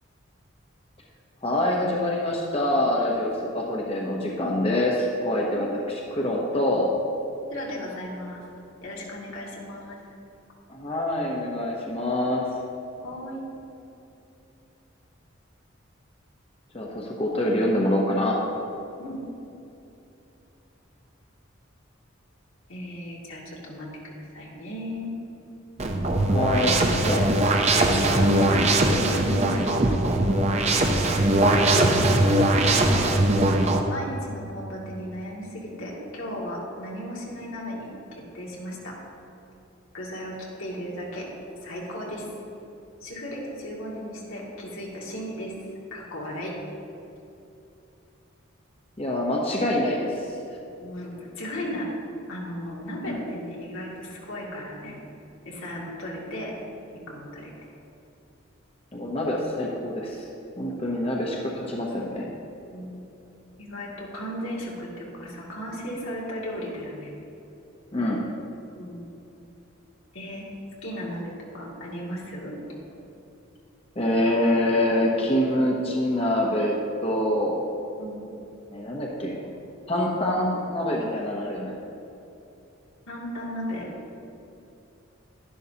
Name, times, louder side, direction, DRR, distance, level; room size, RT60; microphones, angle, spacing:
voice 1, 1.4-6.9 10.7-12.4 16.7-18.4 26.3-26.7 27.0-27.3 49.0-50.4 53.0-53.2 58.9-60.2 60.6-62.3 67.9-68.3 74.0-76.8 77.0-77.7 78.7-79.4 79.9-81.8, left 1 dB, 30° left, -2 dB, 0.9 m, -25 dB
voice 2, 7.5-8.4 8.8-10.0 13.0-13.4 19.0-19.2 22.7-25.1 26.5-26.9 27.8-29.9 31.5-32.1 32.4-33.2 33.9-39.0 39.9-41.3 41.6-42.3 43.0-45.5 45.9-46.5 50.8-51.9 52.3-55.0 55.5-56.6 57.1-57.5 60.8-60.9 62.7-63.1 63.6-67.1 68.7-69.1 70.1-70.5 70.8-72.6 78.0-78.3 83.1-83.9, equal, 85° left, -4 dB, 2.3 m, -35 dB
sound 1, 25.8-33.8, right 2 dB, 35° right, 0.6 m, -21 dB
11.5 x 11.0 x 2.8 m, 2.8 s
head